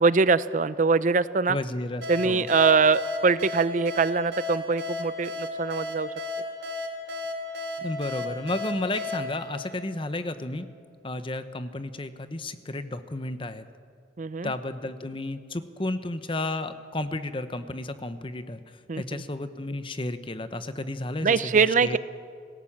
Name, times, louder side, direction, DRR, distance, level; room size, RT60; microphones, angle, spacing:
voice 1, 0.0-1.6 2.1-6.1 14.2-14.5 18.9-19.2 21.2-22.0, right 4 dB, 45° right, 16 dB, 0.5 m, -23 dB
voice 2, 1.5-2.5 7.8-10.7 11.0-13.6 14.4-18.6 19.0-22.0, left 2 dB, 30° left, 11 dB, 1.0 m, -32 dB
sound 1, 2.0-10.5, left 2 dB, 85° right, 3.2 m, -34 dB
26.5 x 17.0 x 7.4 m, 2.2 s
head